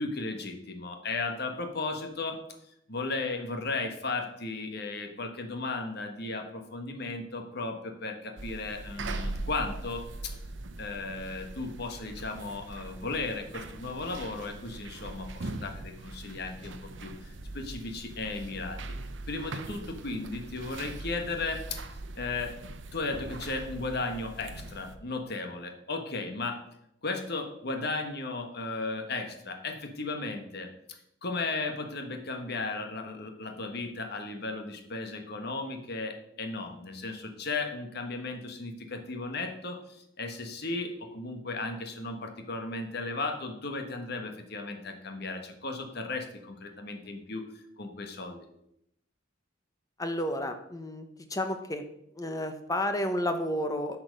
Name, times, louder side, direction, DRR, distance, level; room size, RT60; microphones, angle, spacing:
voice 1, 0.0-2.4 2.9-10.3 10.8-18.8 19.3-21.8 22.1-22.5 22.9-26.6 27.0-30.7 31.2-47.4 47.8-48.5, left 3 dB, 55° left, 5 dB, 1.4 m, -35 dB
sound 1, 8.4-25.0, right 2 dB, 65° right, 0.8 m, -41 dB
voice 2, 50.0-51.8 52.2-54.0, left 1 dB, 20° left, 7 dB, 1.0 m, -31 dB
10.5 x 5.9 x 5.3 m, 0.78 s
head